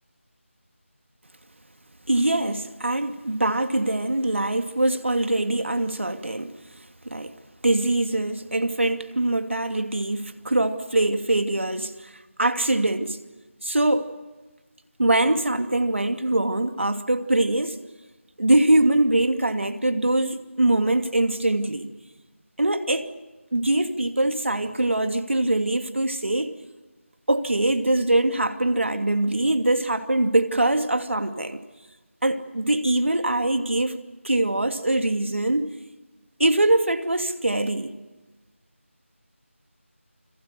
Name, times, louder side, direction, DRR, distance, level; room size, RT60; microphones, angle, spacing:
voice 1, 2.1-6.5 7.0-7.3 7.6-12.1 12.4-13.2 13.6-14.1 15.0-17.8 18.4-21.9 22.6-23.1 23.5-26.5 27.3-31.6 32.2-34.0 34.2-35.7 36.4-37.9, right 1 dB, 60° right, 2.6 m, -23 dB
29.5 x 21.5 x 6.7 m
figure-of-eight pair, 180°, 7 cm